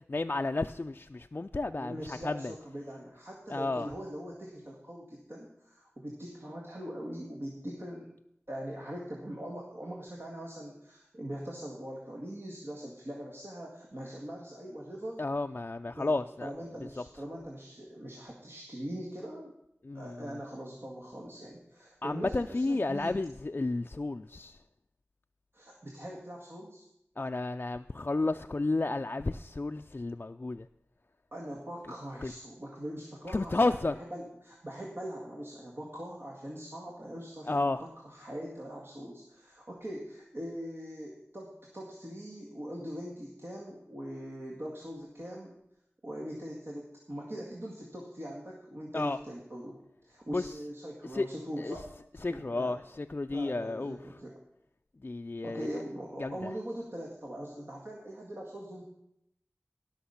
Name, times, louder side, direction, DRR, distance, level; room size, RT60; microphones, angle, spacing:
voice 1, 0.1-2.5 3.5-3.9 15.2-16.5 19.9-20.0 22.0-24.6 27.2-30.7 32.2-32.3 33.3-33.9 37.5-37.8 48.9-49.2 50.3-50.4 51.1-51.2 51.6-51.7 52.2-54.0 55.0-55.7 56.2-56.5, left 2 dB, 40° left, 6 dB, 0.4 m, -32 dB
voice 2, 1.7-8.1 8.5-15.2 16.0-19.5 19.9-23.2 25.5-26.8 31.3-45.6 46.0-52.8 53.3-54.4 55.4-58.8, equal, 55° right, -3 dB, 2.0 m, -42 dB
17.5 x 6.0 x 5.7 m, 0.80 s
wide cardioid pair, 60°, 5 cm